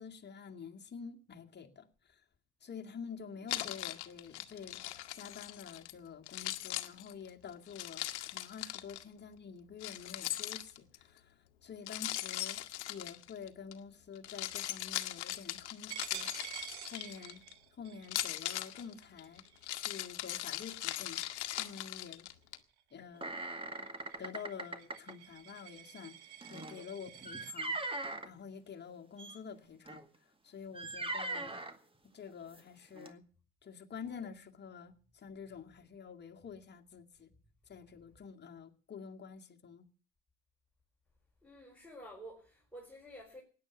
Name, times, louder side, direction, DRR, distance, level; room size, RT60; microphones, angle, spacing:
voice 1, 0.0-2.2 2.6-4.8 5.1-11.3 11.6-12.6 12.9-16.6 16.9-17.4 17.8-22.3 22.9-23.3 24.2-26.1 26.5-30.0 30.4-31.6 32.1-33.2 33.6-37.3 37.7-39.9, left 6 dB, 30° left, 2.2 m, -48 dB
Keys jangling, 3.5-5.9 6.3-9.0 9.8-11.0 11.9-13.7 14.2-17.5 18.0-22.6, left 15 dB, 80° left, 1.3 m, -40 dB
Coin (dropping), 15.9-21.3 21.8-22.0 22.4-27.5, right 12 dB, 80° right, 1.4 m, -51 dB
sound 1, 23.2-25.1 26.4-28.3 29.2-29.4 29.9-30.0 30.7-31.8 32.5-32.6 33.0-33.1, right 2 dB, 15° right, 2.1 m, -40 dB
voice 2, 41.4-43.4, equal, 5° left, 4.6 m, -51 dB
16.5 x 10.0 x 8.0 m
hypercardioid pair, 75°, 33 cm